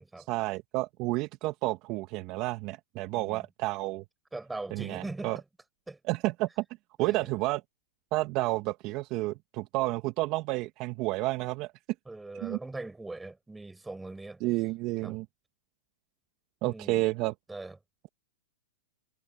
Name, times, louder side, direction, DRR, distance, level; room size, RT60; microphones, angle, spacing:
voice 1, 0.3-4.0 4.7-5.4 6.1-6.6 7.0-7.6 8.1-11.7 12.4-12.6 14.4-15.3 16.6-17.3, right 20 dB, 40° right, 1.6 m, -30 dB
voice 2, 3.1-3.4 4.3-5.4 5.9-6.0 7.0-7.3 12.1-14.4 15.0-15.1 16.6-17.0 17.5-17.8, right 2 dB, 5° right, 6.4 m, -41 dB
hypercardioid pair, 125°, 0 cm